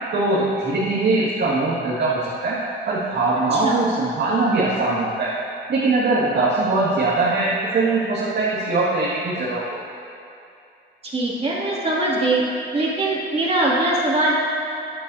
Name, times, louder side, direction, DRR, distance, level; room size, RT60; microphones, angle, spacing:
voice 1, 0.1-2.6 2.9-5.3 5.7-9.8, right 3 dB, 60° right, -8 dB, 2.0 m, -21 dB
voice 2, 11.0-12.4 12.7-14.3, right 2 dB, 30° right, -5 dB, 2.6 m, -21 dB
13.5 x 10.0 x 2.8 m, 2.6 s
cardioid pair, 90°, 20 cm